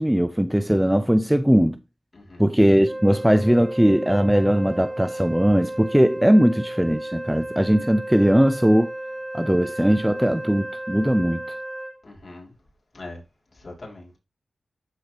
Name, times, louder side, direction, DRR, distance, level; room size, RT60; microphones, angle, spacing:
voice 1, 0.0-1.8 2.4-8.9 9.3-11.4, equal, 5° right, 0.5 m, -19 dB
voice 2, 2.1-2.5 12.0-12.5 12.9-13.2 13.6-14.2, left 2 dB, 40° left, 5.3 m, -41 dB
Wind instrument woodwind instrument, 2.8-12.0, right 1 dB, 20° right, 2.5 m, -34 dB
13.5 x 4.9 x 2.9 m
wide cardioid pair, 95°, 0 cm